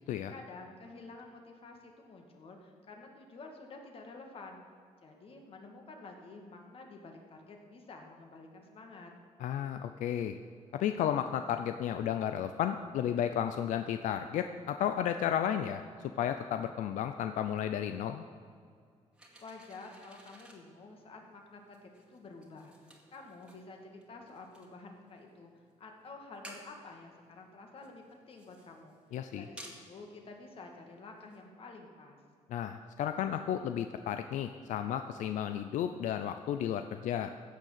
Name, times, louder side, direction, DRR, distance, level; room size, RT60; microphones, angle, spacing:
voice 1, 0.3-4.6 5.0-9.1 19.4-25.5 25.8-29.0 29.4-32.2, left 3 dB, 50° left, 2 dB, 2.1 m, -50 dB
voice 2, 9.4-10.4 10.7-15.8 16.2-18.2 29.1-29.5 32.5-37.3, left 10 dB, 85° left, 8 dB, 0.5 m, -33 dB
sound 1, 19.1-31.4, right 1 dB, 10° right, 2.0 m, -57 dB
15.5 x 6.6 x 7.5 m, 2.2 s
cardioid pair, 120°, 12 cm